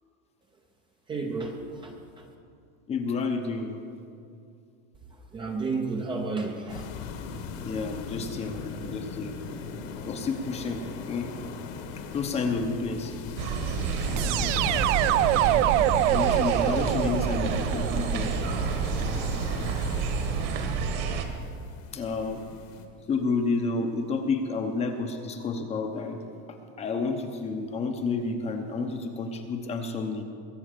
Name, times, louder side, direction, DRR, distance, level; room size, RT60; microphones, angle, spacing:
voice 1, 1.1-1.9 5.3-6.8, right 3 dB, 15° right, 2 dB, 0.7 m, -31 dB
voice 2, 2.9-3.8 7.7-9.4 9.9-11.3 12.1-13.2 16.1-18.4 21.9-22.4 23.1-26.2 26.8-30.2, left 4 dB, 15° left, 5 dB, 0.8 m, -30 dB
sound 1, 6.7-22.9, left 5 dB, 55° left, 1.6 m, -38 dB
sound 2, 13.4-21.2, right 5 dB, 40° right, 1.6 m, -29 dB
sound 3, 14.2-19.1, right 14 dB, 75° right, 0.6 m, -25 dB
21.5 x 8.3 x 6.7 m, 2.4 s
supercardioid pair, 170°, 36 cm